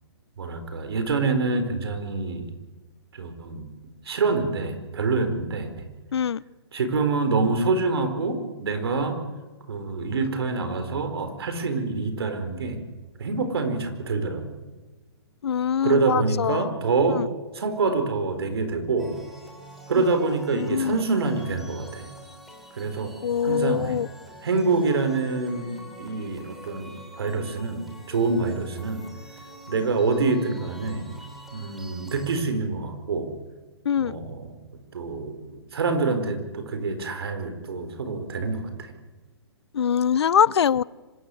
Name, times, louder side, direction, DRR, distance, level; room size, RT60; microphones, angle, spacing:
voice 1, 0.4-2.5 3.1-3.6 4.0-5.9 6.7-9.2 9.7-12.8 13.2-14.6 15.8-17.2 17.5-19.2 19.9-22.1 22.7-23.1 23.4-23.9 24.4-29.0 29.7-31.1 31.5-33.3 34.0-34.5 34.9-38.9, right 3 dB, 65° right, 8 dB, 4.5 m, -26 dB
voice 2, 6.1-6.4 15.4-16.7 17.1-17.3 20.0-20.1 20.5-21.0 23.2-24.1 33.8-34.2 39.7-40.8, left 8 dB, 75° left, 23 dB, 0.6 m, -23 dB
sound 1, 19.0-32.4, equal, ahead, 3.1 m, -46 dB
25.5 x 13.5 x 9.8 m, 1.2 s
hypercardioid pair, 170°, 14 cm